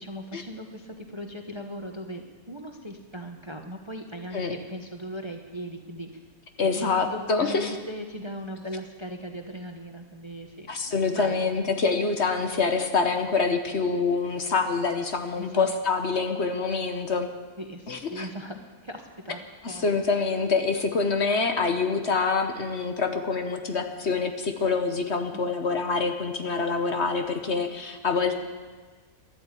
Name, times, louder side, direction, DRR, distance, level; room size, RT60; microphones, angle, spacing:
voice 1, 0.0-6.2 6.6-11.5 13.2-13.4 15.4-15.8 17.6-19.9 25.3-25.6, equal, 20° right, 4 dB, 0.9 m, -39 dB
voice 2, 6.6-7.7 10.7-17.3 17.9-18.3 19.6-28.3, left 4 dB, 50° left, 6 dB, 1.3 m, -26 dB
13.0 x 11.5 x 8.3 m, 1.4 s
omnidirectional pair, 1.5 m